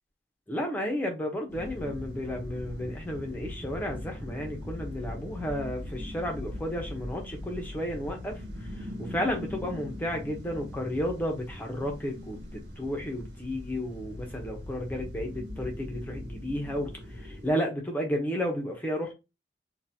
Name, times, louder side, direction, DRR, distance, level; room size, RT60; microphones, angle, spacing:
voice 1, 0.5-19.1, equal, 10° left, 0.8 m, -33 dB
sound 1, 1.5-17.5, left 1 dB, 85° right, 1.2 m, -40 dB
3.8 x 2.4 x 2.8 m
head